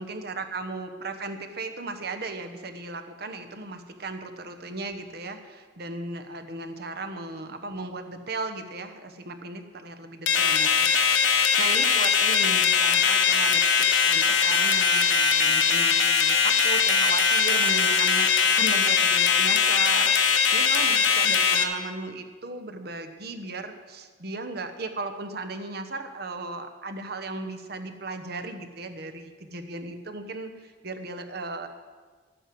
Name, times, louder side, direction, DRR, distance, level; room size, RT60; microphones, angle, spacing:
voice 1, 0.0-31.7, right 3 dB, 55° right, 7 dB, 1.1 m, -36 dB
sound 1, 10.3-21.6, left 6 dB, 85° left, 1.2 m, -21 dB
12.0 x 9.1 x 7.7 m, 1.5 s
head